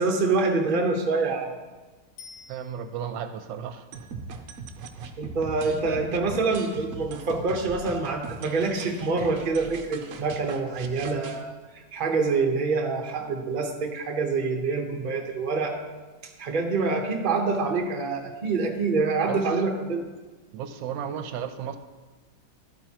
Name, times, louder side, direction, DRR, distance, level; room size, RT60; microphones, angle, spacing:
voice 1, 0.0-1.5 5.2-15.8 16.2-20.0, right 4 dB, 35° right, 3 dB, 0.8 m, -26 dB
Bicycle bell, 2.2-3.3 12.4-12.5, left 5 dB, 85° left, 1.9 m, -49 dB
voice 2, 2.5-3.9 19.3-19.6 20.5-21.8, right 8 dB, 80° right, 8 dB, 1.3 m, -34 dB
sound 1, 3.9-11.4, right 4 dB, 65° right, 0.9 m, -40 dB
11.5 x 8.9 x 2.9 m, 1.2 s
omnidirectional pair, 2.1 m